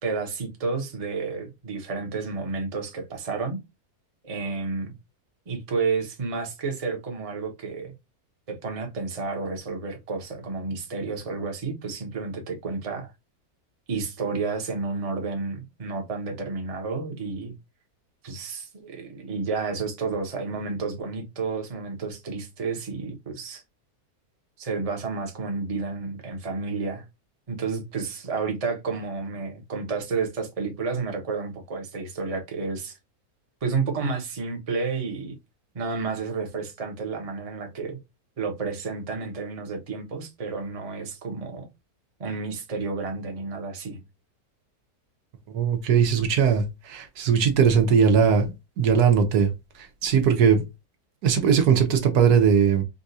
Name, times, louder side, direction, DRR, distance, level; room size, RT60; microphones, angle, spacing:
voice 1, 0.0-3.6 4.2-4.9 5.5-7.9 8.5-13.1 13.9-17.5 18.2-23.6 24.6-27.0 27.5-33.0 33.6-35.4 35.7-38.0 38.4-41.7 42.2-44.0, right 4 dB, 30° right, 0.7 m, -31 dB
voice 2, 45.5-49.5 50.0-50.6 51.2-52.8, right 7 dB, 85° right, 1.3 m, -20 dB
3.8 x 2.4 x 2.6 m
omnidirectional pair, 1.6 m